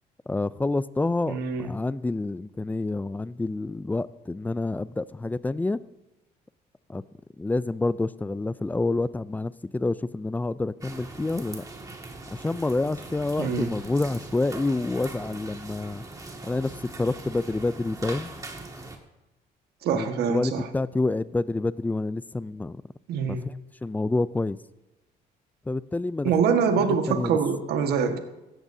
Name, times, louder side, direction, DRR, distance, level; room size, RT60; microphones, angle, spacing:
voice 1, 0.3-5.8 6.9-7.0 7.4-11.6 12.3-16.0 16.5-18.3 19.9-22.8 23.3-23.4 23.8-24.6 25.7-26.3 27.1-27.4, left 2 dB, 10° left, 17 dB, 0.4 m, -28 dB
voice 2, 1.3-1.7 13.4-13.7 19.8-20.7 23.1-23.4 26.2-28.2, right 6 dB, 75° right, 6 dB, 1.6 m, -24 dB
sound 1, 10.8-19.0, right 2 dB, 20° right, 1.9 m, -41 dB
17.0 x 13.5 x 2.7 m, 1.0 s
cardioid pair, 110°, 17 cm